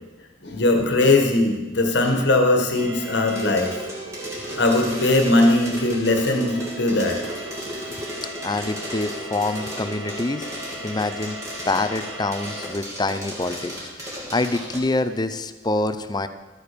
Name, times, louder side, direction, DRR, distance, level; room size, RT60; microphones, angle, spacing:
voice 1, 0.4-3.8 4.6-7.2, left 2 dB, 60° left, 3 dB, 1.6 m, -20 dB
sound 1, 2.7-12.7, right 1 dB, 80° right, 1.8 m, -37 dB
sound 2, 3.3-14.8, equal, 15° right, 2.4 m, -36 dB
voice 2, 8.4-10.5 10.8-11.4 11.7-13.7 14.0-16.3, left 2 dB, 20° left, 10 dB, 0.5 m, -26 dB
13.0 x 8.8 x 5.2 m, 1.2 s
head